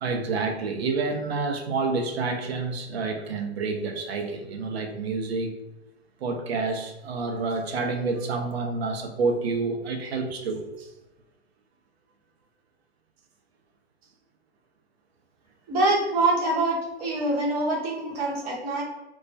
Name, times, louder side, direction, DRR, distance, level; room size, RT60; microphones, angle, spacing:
voice 1, 0.0-5.5 6.2-10.9, right 4 dB, 65° right, 5 dB, 0.6 m, -28 dB
voice 2, 15.7-18.8, right 2 dB, 35° right, -3 dB, 0.9 m, -25 dB
2.2 x 2.2 x 2.5 m, 1.0 s
hypercardioid pair, 115°, 34 cm